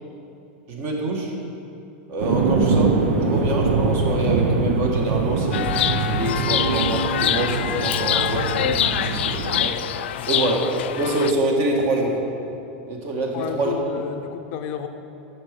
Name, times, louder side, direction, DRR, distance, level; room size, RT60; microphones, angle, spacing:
voice 1, 0.7-1.3 2.1-5.7 6.0-9.8 10.3-10.6 10.9-12.2 12.9-13.7, right 1 dB, 40° right, 0 dB, 1.6 m, -26 dB
sound 1, 2.2-9.7, right 4 dB, 85° right, 1.0 m, -23 dB
Chirp tweet, 5.5-11.3, left 11 dB, 90° left, 0.4 m, -25 dB
voice 2, 10.1-10.5 13.3-14.9, left 8 dB, 45° left, 6 dB, 0.6 m, -31 dB
8.7 x 6.1 x 6.7 m, 2.7 s
supercardioid pair, 155°, 6 cm